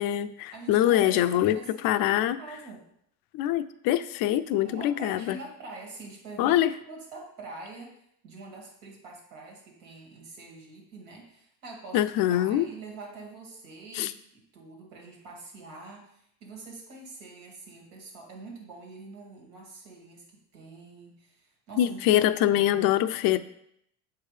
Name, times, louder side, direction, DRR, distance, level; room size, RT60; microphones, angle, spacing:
voice 1, 0.0-1.6 1.8-2.4 3.3-5.4 6.4-6.7 11.9-12.7 13.9-14.1 21.8-23.4, left 12 dB, 70° left, 13 dB, 0.5 m, -24 dB
voice 2, 0.5-2.9 4.6-8.0 8.2-22.9, right 3 dB, 90° right, 0 dB, 1.9 m, -45 dB
6.7 x 4.7 x 3.2 m, 0.73 s
supercardioid pair, 100°, 36 cm